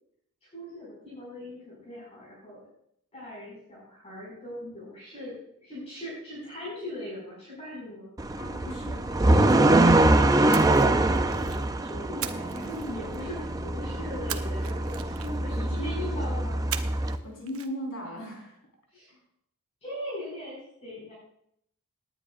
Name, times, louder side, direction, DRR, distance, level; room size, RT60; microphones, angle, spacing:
voice 1, 0.4-2.6 3.1-5.4 5.6-8.1 11.9-16.6 18.9-19.1 19.8-21.1, left 1 dB, 30° left, -7 dB, 5.5 m, -39 dB
sound 1, 8.2-17.2, right 2 dB, 15° right, 0.5 m, -24 dB
voice 2, 8.4-10.0 15.2-15.7 17.2-18.6 19.1-19.2, equal, 65° left, -1 dB, 4.5 m, -39 dB
Splash splatter, 10.5-11.7 12.2-13.4 14.3-15.6 16.7-17.2 17.5-17.7, right 10 dB, 75° right, 0.8 m, -38 dB
19.0 x 9.9 x 2.5 m, 0.69 s
head